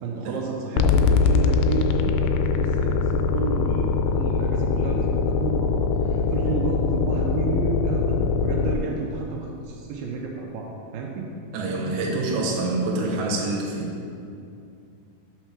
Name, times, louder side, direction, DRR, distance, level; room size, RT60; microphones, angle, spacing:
voice 1, 0.0-11.3 11.7-11.8 12.9-13.2, right 3 dB, 80° right, -1 dB, 2.6 m, -31 dB
sound 1, 0.8-8.8, left 4 dB, 80° left, 2.2 m, -22 dB
voice 2, 11.5-14.0, right 2 dB, 65° right, -3 dB, 2.4 m, -26 dB
6.7 x 5.6 x 6.0 m, 2.5 s
omnidirectional pair, 4.4 m